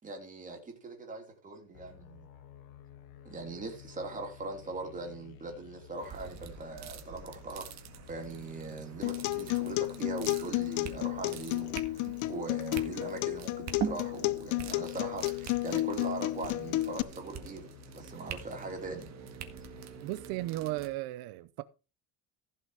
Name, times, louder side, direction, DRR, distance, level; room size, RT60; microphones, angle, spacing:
voice 1, 0.0-2.3 3.2-7.7 8.1-19.1, right 3 dB, 20° right, 3.1 m, -41 dB
sound 1, 1.7-20.3, left 9 dB, 70° left, 2.0 m, -53 dB
sound 2, 6.0-20.9, right 8 dB, 45° right, 1.8 m, -44 dB
Acoustic guitar, 9.0-17.0, left 18 dB, 55° left, 0.6 m, -32 dB
voice 2, 20.0-21.6, right 17 dB, 80° right, 0.7 m, -35 dB
15.5 x 5.8 x 4.9 m
cardioid pair, 160°, 37 cm